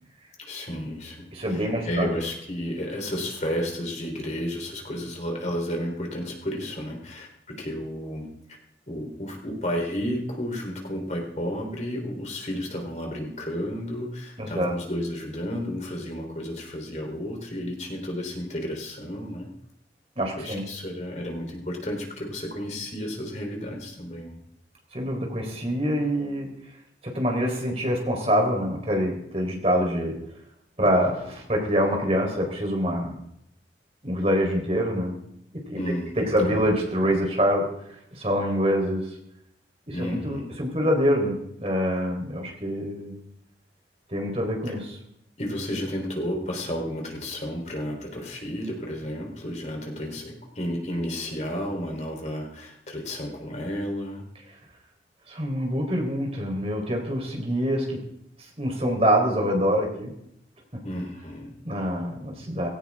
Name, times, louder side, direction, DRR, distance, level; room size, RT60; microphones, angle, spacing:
voice 1, 0.4-8.3 8.9-19.5 20.4-24.4 35.7-36.5 39.9-40.5 44.7-44.8 45.4-54.3 60.8-61.6, equal, 40° left, 1 dB, 3.9 m, -32 dB
voice 2, 1.3-2.1 14.4-14.7 20.2-20.6 24.9-26.5 27.0-30.2 30.8-33.2 34.0-35.1 35.7-35.8 36.2-37.7 38.1-39.1 39.9-43.2 44.1-45.0 55.3-58.0 58.6-60.1 61.6-62.7, equal, 35° right, 1 dB, 4.1 m, -25 dB
19.5 x 17.5 x 3.7 m, 0.74 s
head